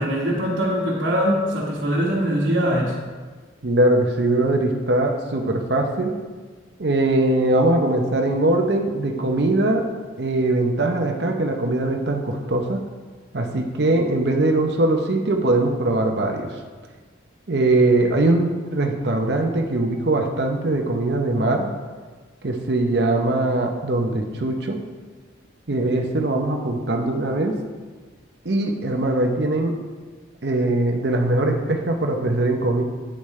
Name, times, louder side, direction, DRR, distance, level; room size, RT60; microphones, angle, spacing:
voice 1, 0.0-2.9, equal, 85° right, -8 dB, 1.4 m, -22 dB
voice 2, 3.6-6.1 6.8-9.8 10.2-12.8 13.3-16.6 17.5-21.7 22.4-24.8 25.7-27.5 28.4-29.8 30.4-32.8, right 2 dB, 60° right, 3 dB, 0.8 m, -21 dB
8.9 x 8.3 x 3.2 m, 1.4 s
head